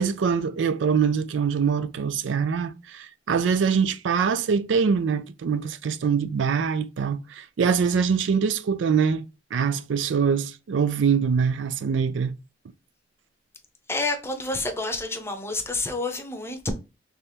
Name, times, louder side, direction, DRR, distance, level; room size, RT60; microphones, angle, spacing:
voice 1, 0.0-9.2 9.5-12.3, right 6 dB, 75° right, 0.4 m, -24 dB
voice 2, 13.9-16.7, left 2 dB, 15° left, 0.7 m, -29 dB
4.1 x 3.4 x 3.3 m
head